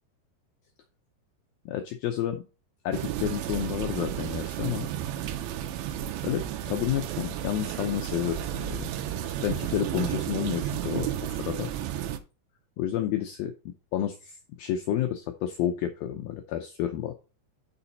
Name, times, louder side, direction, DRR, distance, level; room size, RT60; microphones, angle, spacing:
voice 1, 1.7-2.4 2.8-4.9 6.2-8.9 9.4-11.7 12.8-17.1, left 11 dB, 90° left, 5 dB, 2.0 m, -30 dB
sound 1, 2.9-12.2, right 11 dB, 85° right, 3.0 m, -32 dB
7.0 x 6.1 x 4.0 m, 0.32 s
omnidirectional pair, 5.1 m